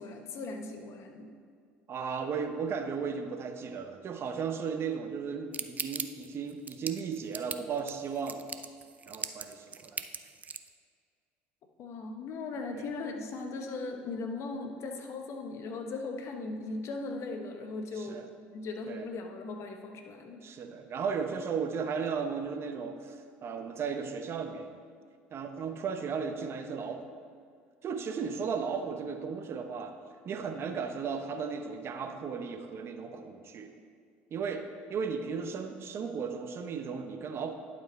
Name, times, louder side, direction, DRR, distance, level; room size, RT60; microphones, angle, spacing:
voice 1, 0.0-1.3 11.8-18.2 18.5-20.4, left 3 dB, 55° left, 4 dB, 1.1 m, -38 dB
voice 2, 1.9-8.4 9.1-10.0 12.7-12.9 18.0-18.2 18.9-19.1 20.4-24.7 25.3-27.1 27.8-30.0 30.2-33.7 34.3-37.5, right 6 dB, 45° right, 6 dB, 0.9 m, -35 dB
sound 1, 5.5-10.7, right 5 dB, 25° right, 0.4 m, -38 dB
11.0 x 4.6 x 4.1 m, 2.2 s
hypercardioid pair, 75°, 6 cm